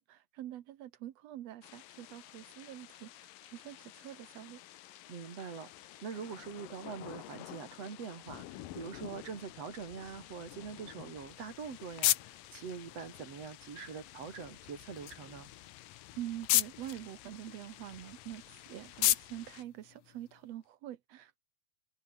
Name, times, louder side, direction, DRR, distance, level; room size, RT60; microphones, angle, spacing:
voice 1, 0.0-4.6 16.2-21.4, right 13 dB, 65° right, 1.8 m, -45 dB
sound 1, 1.6-19.6, left 14 dB, 90° left, 2.8 m, -52 dB
voice 2, 5.1-5.7 6.0-15.5, right 6 dB, 50° right, 3.6 m, -44 dB
sound 2, 11.2-20.6, left 14 dB, 70° left, 2.2 m, -36 dB
omnidirectional pair, 3.8 m